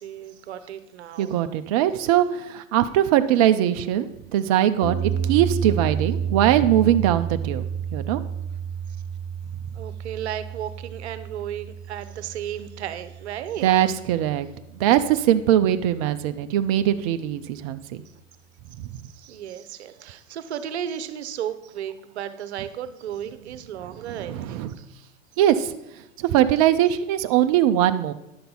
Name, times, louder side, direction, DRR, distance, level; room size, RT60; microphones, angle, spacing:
voice 1, 0.0-1.4 9.7-13.7 19.1-24.9, right 10 dB, 55° right, 12 dB, 0.8 m, -34 dB
voice 2, 1.2-7.6 7.9-8.2 13.6-14.5 14.8-17.8 24.3-24.7 25.4-25.7 26.2-28.1, right 11 dB, 30° right, 10 dB, 0.4 m, -21 dB
sound 1, 4.8-15.0, right 7 dB, 25° left, 1.0 m, -31 dB
10.5 x 6.7 x 3.9 m, 0.88 s
figure-of-eight pair, 95°, 38 cm